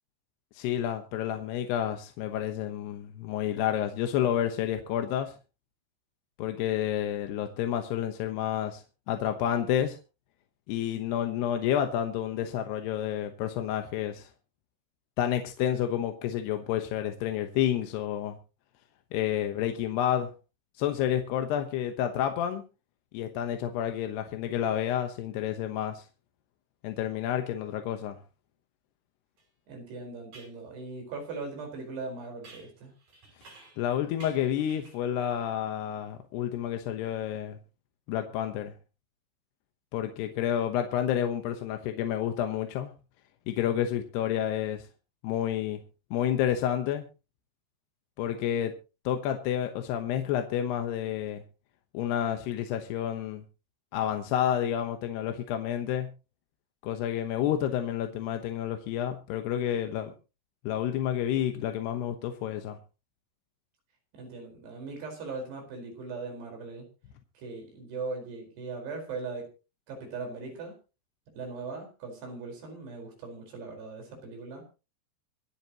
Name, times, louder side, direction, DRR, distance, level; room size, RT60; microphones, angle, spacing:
voice 1, 0.5-5.3 6.4-10.0 10.7-14.3 15.2-18.4 19.1-20.3 20.8-22.6 23.1-26.0 26.8-28.2 33.8-37.6 38.1-38.7 39.9-42.9 43.5-44.9 45.2-45.8 46.1-47.0 48.2-48.7 49.0-51.4 51.9-53.4 53.9-56.1 56.8-60.1 60.6-62.8, left 10 dB, 75° left, 6 dB, 3.1 m, -29 dB
sound 1, 29.4-29.5 30.3-30.6 32.4-33.9 34.2-35.1, right 3 dB, 50° right, 7.3 m, -53 dB
voice 2, 29.7-32.9 64.1-66.9 67.3-69.5 69.9-70.8 71.3-74.7, right 3 dB, 70° right, 2 dB, 6.7 m, -39 dB
25.5 x 9.0 x 3.0 m, 0.31 s
omnidirectional pair, 5.0 m